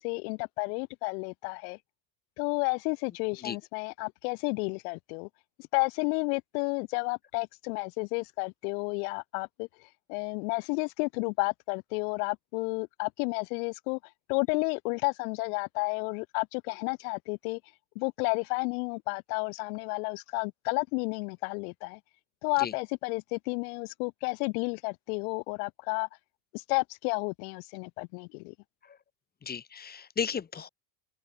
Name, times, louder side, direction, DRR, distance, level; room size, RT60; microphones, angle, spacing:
voice 1, 0.0-1.8 2.4-5.3 5.7-9.7 10.1-14.0 14.3-17.6 18.0-22.0 22.4-26.1 26.5-28.5, left 33 dB, 80° left, 0.8 m, -31 dB
voice 2, 29.4-30.7, left 7 dB, 20° left, 2.2 m, -34 dB
open air
cardioid pair, 150°, 44 cm